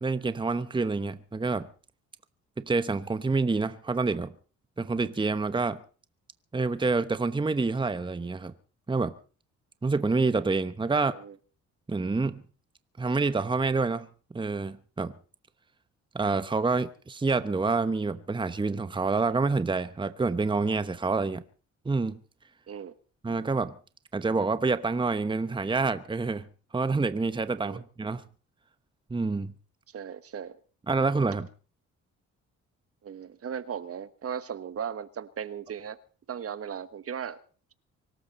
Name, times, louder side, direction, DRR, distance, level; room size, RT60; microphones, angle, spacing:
voice 1, 0.0-1.7 2.6-4.3 4.8-5.8 6.5-8.5 8.9-9.1 9.8-11.2 11.9-12.4 13.0-14.1 14.3-15.1 16.1-21.4 21.8-22.2 23.2-23.7 24.1-26.4 26.7-28.2 29.1-29.5 30.9-31.5, right 3 dB, 15° right, 1.0 m, -27 dB
voice 2, 10.9-11.4 22.7-22.9 27.6-27.8 29.9-30.6 33.0-36.0 36.3-37.4, right 8 dB, 50° right, 1.3 m, -37 dB
24.5 x 13.0 x 4.2 m
cardioid pair, 90°, 30 cm